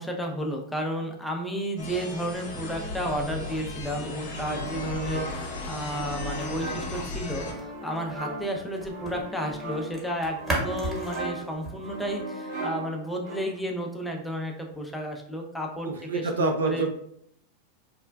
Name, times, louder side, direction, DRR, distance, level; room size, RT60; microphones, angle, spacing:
voice 1, 0.0-16.8, equal, 5° left, 1 dB, 0.5 m, -32 dB
sound 1, 1.8-7.5, left 2 dB, 75° left, 0.6 m, -36 dB
sound 2, 4.3-13.8, right 2 dB, 60° right, 0.9 m, -38 dB
sound 3, 4.7-9.2 9.5-12.2, right 1 dB, 15° right, 1.0 m, -37 dB
voice 2, 15.9-16.9, right 3 dB, 85° right, 3 dB, 0.4 m, -27 dB
3.2 x 2.1 x 2.2 m, 0.71 s
hypercardioid pair, 100°, 0 cm